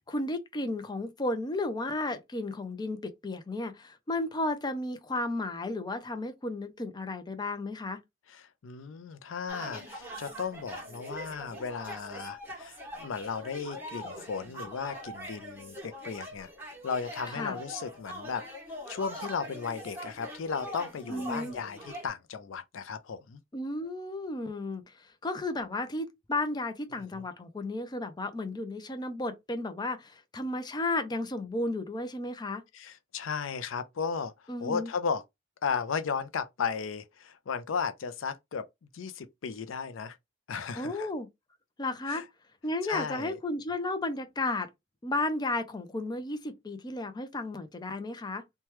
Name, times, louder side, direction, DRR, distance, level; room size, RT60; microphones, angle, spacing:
voice 1, 0.1-8.0 17.3-17.6 21.1-21.6 23.5-32.6 34.5-34.9 40.7-41.3 41.8-42.2 42.6-44.7 45.0-48.4, left 2 dB, 20° left, 0.4 m, -33 dB
voice 2, 8.3-18.4 18.9-23.4 26.9-27.2 32.7-34.3 34.6-35.2 35.6-38.7 38.9-40.2 40.5-41.1 42.1-42.2 42.9-43.4, left 6 dB, 80° left, 0.4 m, -35 dB
sound 1, 9.5-22.1, equal, 10° right, 1.3 m, -43 dB
2.9 x 2.2 x 3.0 m
head